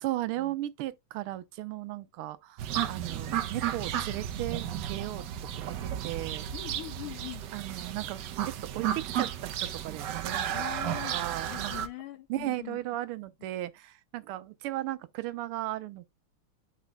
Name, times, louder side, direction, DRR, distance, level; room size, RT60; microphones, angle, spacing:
voice 1, 0.0-5.2 5.5-6.4 7.5-8.2 8.7-10.5 11.1-11.7 12.3-16.1, right 15 dB, 85° right, 1.6 m, -36 dB
sound 1, 2.6-11.9, right 10 dB, 65° right, 1.2 m, -33 dB
voice 2, 6.5-7.5 10.5-11.2 11.4-12.8, left 17 dB, 85° left, 1.5 m, -42 dB
12.0 x 4.2 x 2.2 m
omnidirectional pair, 2.4 m